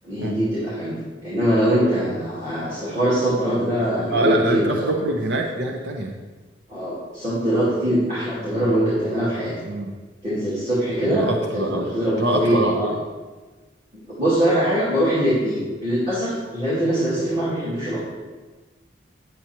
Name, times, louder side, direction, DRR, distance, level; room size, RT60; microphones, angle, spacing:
voice 1, 0.0-4.9 6.7-9.5 10.2-11.3 11.5-12.9 14.1-18.0, right 1 dB, 35° right, -10 dB, 2.4 m, -22 dB
voice 2, 4.1-6.2 9.6-9.9 11.0-13.0, right 1 dB, 75° right, 1 dB, 0.7 m, -24 dB
9.3 x 7.8 x 2.9 m, 1.3 s
head